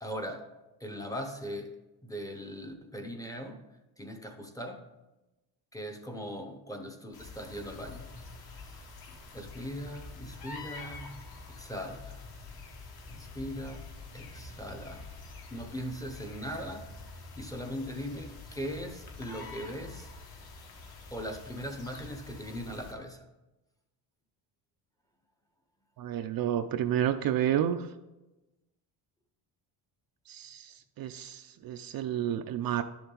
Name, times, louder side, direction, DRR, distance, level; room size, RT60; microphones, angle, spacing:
voice 1, 0.0-0.5 0.8-1.8 2.0-3.6 4.0-4.8 5.7-8.1 8.5-8.9 9.3-12.2 13.1-15.1 15.5-16.9 17.3-20.1 21.1-23.3, equal, 10° left, 4 dB, 0.7 m, -40 dB
sound 1, 7.1-22.9, left 3 dB, 55° left, 1.6 m, -47 dB
voice 2, 26.0-27.9 30.3-32.8, right 10 dB, 50° right, 8 dB, 0.5 m, -30 dB
11.5 x 7.0 x 3.8 m, 1.0 s
cardioid pair, 165°, 45 cm